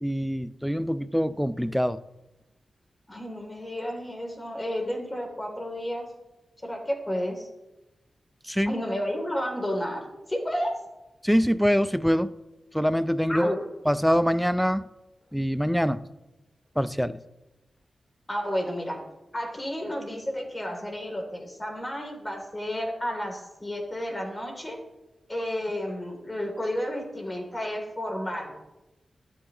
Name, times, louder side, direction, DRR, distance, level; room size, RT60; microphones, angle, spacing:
voice 1, 0.0-2.0 8.5-8.7 11.2-12.3 12.7-13.5 13.9-14.8 15.3-16.0 16.8-17.2, equal, ahead, 0.5 m, -24 dB
voice 2, 3.1-6.1 6.6-7.5 8.7-10.7 13.3-13.6 18.3-19.0 19.3-24.8 25.3-28.5, equal, 25° left, 2.9 m, -31 dB
12.5 x 8.7 x 3.0 m
cardioid pair, 45°, 0 cm